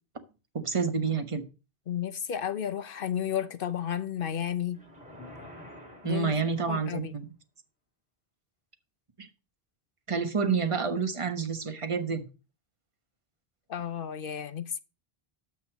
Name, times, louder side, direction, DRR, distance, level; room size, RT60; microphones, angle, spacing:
voice 1, 0.5-1.4 6.0-7.3 9.2-9.3 10.1-12.3, right 5 dB, 30° right, 1.2 m, -29 dB
voice 2, 1.9-4.8 6.0-6.3 6.7-7.2 13.7-14.8, left 9 dB, 60° left, 1.0 m, -32 dB
sound 1, 4.7-7.1, left 1 dB, 5° right, 5.3 m, -48 dB
9.5 x 6.3 x 5.9 m
omnidirectional pair, 1.0 m